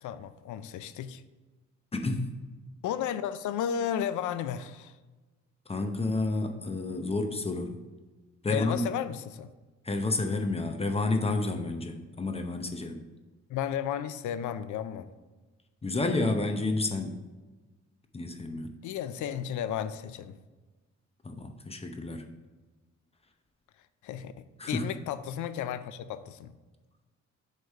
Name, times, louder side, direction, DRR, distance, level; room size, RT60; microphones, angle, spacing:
voice 1, 0.0-1.2 2.8-5.0 8.5-9.5 13.5-15.1 18.8-20.4 24.0-26.6, left 9 dB, 85° left, 13 dB, 0.5 m, -33 dB
voice 2, 1.9-2.3 5.7-7.8 8.4-8.8 9.8-13.0 15.8-17.2 18.1-18.8 21.2-22.2 24.6-24.9, left 2 dB, 20° left, 5 dB, 0.7 m, -30 dB
8.0 x 3.3 x 5.4 m, 1.2 s
cardioid pair, 100°, 29 cm